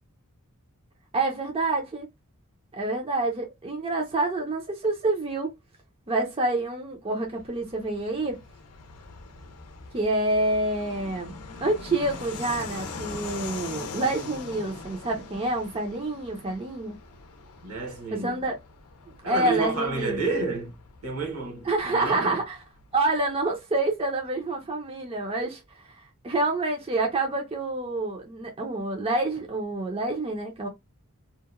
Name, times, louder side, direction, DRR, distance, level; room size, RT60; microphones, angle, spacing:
voice 1, 1.1-2.1 2.7-5.5 6.1-8.4 9.9-11.3 11.6-17.0 18.1-18.6 19.3-20.2 21.6-22.6 22.9-30.7, right 2 dB, 25° right, 0.5 m, -27 dB
Fixed-wing aircraft airplane, 7.2-23.4, left 4 dB, 85° left, 0.5 m, -42 dB
voice 2, 17.6-18.4 19.2-20.8 21.0-22.4, right 3 dB, 70° right, 0.9 m, -30 dB
2.8 x 2.1 x 2.3 m
head